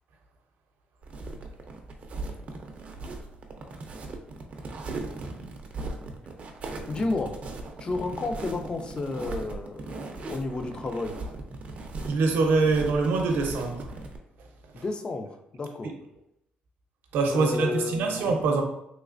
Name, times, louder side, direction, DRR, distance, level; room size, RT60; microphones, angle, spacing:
sound 1, 1.0-14.2, right 3 dB, 40° right, 0.4 m, -38 dB
voice 1, 6.9-7.4 7.8-11.1 14.7-15.9 17.3-18.4, left 3 dB, 25° left, 0.3 m, -32 dB
voice 2, 12.1-13.9 14.8-14.9 17.1-18.6, right 4 dB, 85° right, 0.6 m, -24 dB
3.1 x 3.1 x 2.5 m
cardioid pair, 150°, 3 cm